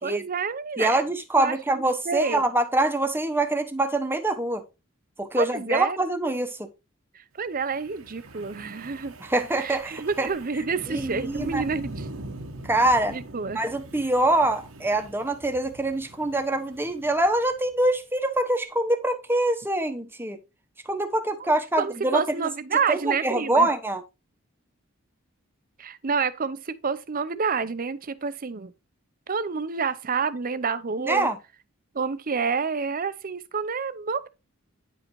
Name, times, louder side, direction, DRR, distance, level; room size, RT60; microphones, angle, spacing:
voice 1, 0.0-1.0 1.4-2.4 5.4-6.0 7.1-9.1 9.6-12.1 13.1-13.6 21.4-23.7 25.8-28.7 29.3-31.3 31.9-34.3, right 5 dB, 40° right, 0.7 m, -28 dB
voice 2, 0.8-4.6 5.2-6.7 9.2-10.3 10.9-11.6 12.6-13.2 13.5-20.4 20.9-22.2 22.9-24.0 31.0-31.4, right 1 dB, 10° right, 1.0 m, -24 dB
Wind, 7.6-17.9, right 2 dB, 85° right, 1.2 m, -42 dB
9.9 x 5.1 x 3.1 m
head